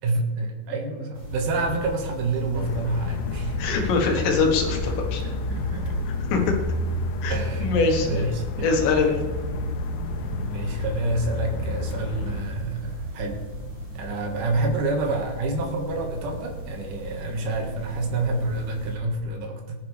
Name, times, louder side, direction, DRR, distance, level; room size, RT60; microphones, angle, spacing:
voice 1, 0.0-3.7 5.2-5.9 7.3-8.7 9.0-9.2 10.2-13.4 13.9-19.8, right 2 dB, 60° right, 1 dB, 2.4 m, -28 dB
sound 1, 1.1-18.9, equal, 25° right, 4.6 m, -33 dB
sound 2, 2.5-12.4, left 6 dB, 85° left, 3.2 m, -34 dB
voice 2, 3.6-5.2 6.3-6.4 7.2-7.4 7.6-8.2 8.6-9.2, left 4 dB, 70° left, 2 dB, 3.4 m, -23 dB
19.0 x 11.0 x 3.4 m, 1.3 s
omnidirectional pair, 5.5 m